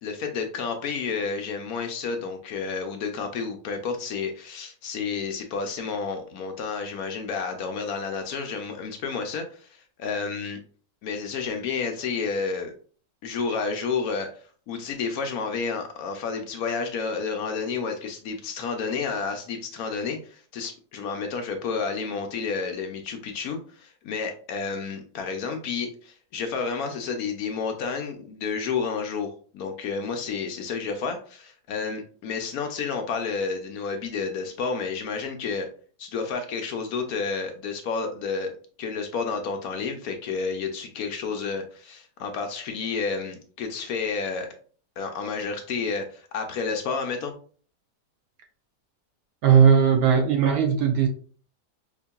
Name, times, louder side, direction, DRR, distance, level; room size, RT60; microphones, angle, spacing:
voice 1, 0.0-10.6 11.0-12.7 13.2-14.3 14.7-35.7 36.0-38.5 38.8-44.5 45.0-47.3, left 5 dB, 70° left, 5 dB, 1.0 m, -30 dB
voice 2, 49.4-51.1, right 7 dB, 70° right, 3 dB, 1.0 m, -18 dB
5.1 x 2.7 x 2.2 m, 0.43 s
omnidirectional pair, 1.8 m